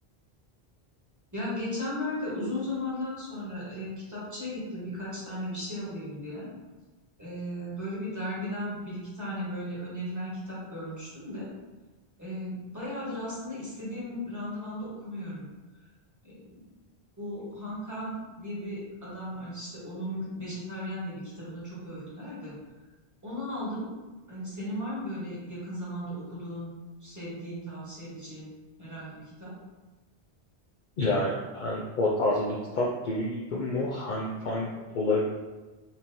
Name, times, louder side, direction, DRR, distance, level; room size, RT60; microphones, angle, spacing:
voice 1, 1.3-6.5 7.2-11.5 12.2-15.5 16.2-16.6 17.2-22.6 23.2-23.9 24.3-29.5, left 1 dB, 15° right, -9 dB, 1.3 m, -36 dB
voice 2, 31.0-35.2, left 2 dB, 60° left, -3 dB, 0.6 m, -28 dB
4.3 x 2.9 x 2.7 m, 1.2 s
omnidirectional pair, 1.1 m